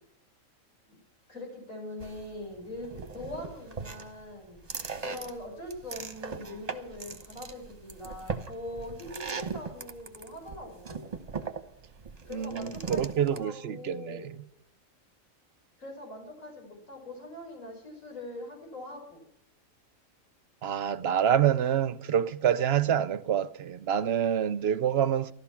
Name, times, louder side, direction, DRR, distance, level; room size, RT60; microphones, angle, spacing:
voice 1, 1.3-4.6 5.0-11.0 12.2-14.3 15.8-19.2, left 1 dB, 75° left, 6.1 m, -42 dB
sound 1, 2.0-13.4, right 5 dB, 30° right, 1.0 m, -39 dB
voice 2, 12.3-14.2 20.6-25.3, right 9 dB, 55° right, 0.8 m, -27 dB
15.0 x 12.5 x 5.8 m
omnidirectional pair, 1.4 m